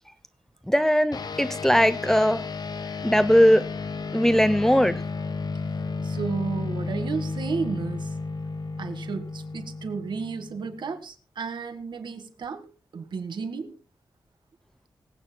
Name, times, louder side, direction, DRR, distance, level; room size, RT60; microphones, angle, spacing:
voice 1, 0.7-2.4 3.0-3.6 4.1-5.0, equal, 5° left, 0.6 m, -19 dB
sound 1, 1.1-10.9, left 4 dB, 60° left, 0.9 m, -33 dB
voice 2, 6.0-8.2 8.8-13.8, right 5 dB, 80° right, 1.6 m, -33 dB
25.5 x 8.6 x 2.2 m
wide cardioid pair, 95°, 8 cm